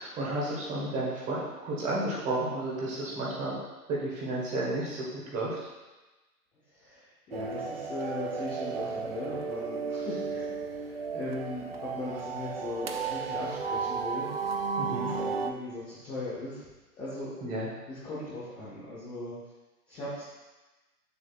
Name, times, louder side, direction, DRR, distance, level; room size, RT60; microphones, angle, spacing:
voice 1, 0.0-3.6 3.9-5.6 14.8-15.1 17.4-17.7, right 2 dB, 15° right, -6 dB, 1.5 m, -32 dB
voice 2, 6.7-16.6 16.9-17.3 17.9-19.3 19.9-20.2, left 2 dB, 10° left, -11 dB, 0.8 m, -39 dB
sound 1, 7.3-15.5, right 5 dB, 40° right, 0.4 m, -34 dB
8.3 x 6.9 x 2.5 m, 1.2 s
figure-of-eight pair, 130°, 49 cm